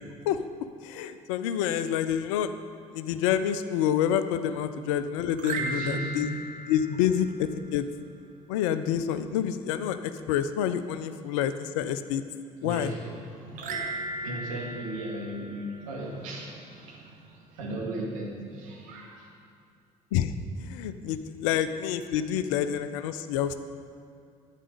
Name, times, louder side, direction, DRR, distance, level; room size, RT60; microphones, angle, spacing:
voice 1, 0.3-2.5 2.9-6.3 6.7-7.9 8.5-12.2 12.6-12.9 20.1-20.3 20.6-23.6, left 9 dB, 65° left, 11 dB, 0.5 m, -28 dB
sound 1, 5.3-7.8 13.6-16.2, right 2 dB, 50° right, 1.0 m, -37 dB
voice 2, 5.6-6.2 12.6-19.3, right 1 dB, 70° right, -2 dB, 2.0 m, -37 dB
11.0 x 8.5 x 5.1 m, 2.4 s
figure-of-eight pair, 50°, 18 cm